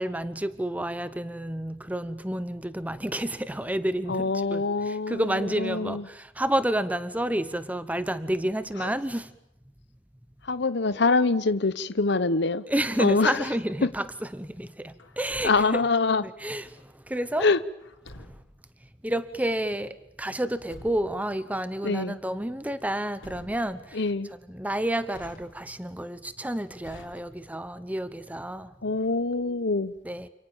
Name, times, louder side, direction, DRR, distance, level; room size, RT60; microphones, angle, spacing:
voice 1, 0.0-9.3 12.7-15.8 16.2-17.5 18.2-18.4 19.0-24.1 24.5-28.7 30.0-30.3, right 1 dB, 10° right, 1.0 m, -30 dB
voice 2, 4.1-6.0 8.8-8.9 10.5-13.4 13.8-13.9 15.4-16.3 17.4-17.6 21.8-22.2 23.9-24.3 28.8-29.9, left 3 dB, 60° left, 1.0 m, -25 dB
Truck, 15.0-15.9 17.8-18.6 20.3-21.3 22.9-23.9 25.1-25.9 26.8-27.7, left 1 dB, 90° left, 4.1 m, -49 dB
29.5 x 28.0 x 7.3 m
head